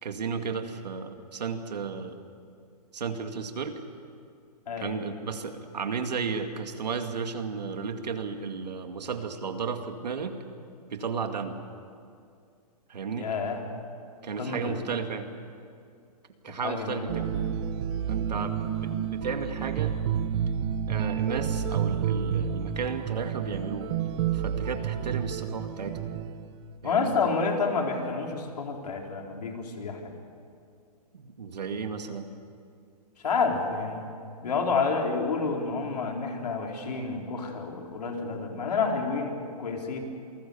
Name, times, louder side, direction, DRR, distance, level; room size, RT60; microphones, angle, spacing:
voice 1, 0.0-2.3 2.9-3.8 4.8-10.4 10.9-11.6 12.9-13.3 14.2-15.3 16.4-17.3 18.1-19.9 20.9-23.9 24.3-26.2 26.8-27.1 31.1-32.3, right 5 dB, 90° right, 6 dB, 2.3 m, -33 dB
voice 2, 4.7-5.0 13.2-13.6 14.4-15.0 16.5-17.1 17.3-17.4 26.8-30.1 33.2-34.0 34.4-40.0, left 4 dB, 75° left, 1 dB, 4.4 m, -29 dB
sound 1, 17.1-26.7, right 8 dB, 40° right, 1.3 m, -30 dB
27.5 x 19.5 x 7.1 m, 2.4 s
hypercardioid pair, 150°, 21 cm